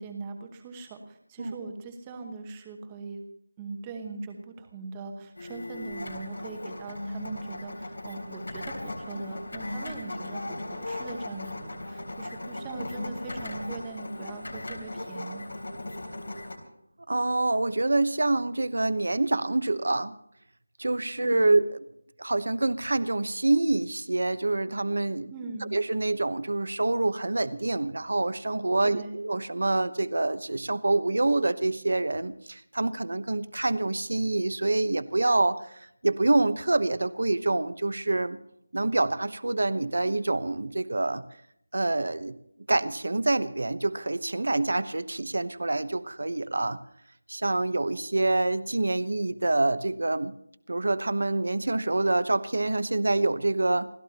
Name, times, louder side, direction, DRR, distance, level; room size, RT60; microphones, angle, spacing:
voice 1, 0.0-3.2 3.6-15.5 21.2-21.6 25.3-25.8 28.8-29.2, right 3 dB, 10° right, 5 dB, 1.0 m, -40 dB
sound 1, 5.4-16.6, left 1 dB, 80° left, 3.7 m, -37 dB
voice 2, 17.1-20.2 20.8-21.7 22.2-25.3 25.7-35.6 36.0-38.4 38.7-41.2 41.7-42.3 42.7-46.8 47.3-50.3 50.7-53.9, right 2 dB, 65° right, 14 dB, 0.9 m, -26 dB
28.5 x 14.0 x 2.9 m, 0.72 s
figure-of-eight pair, 180°, 0 cm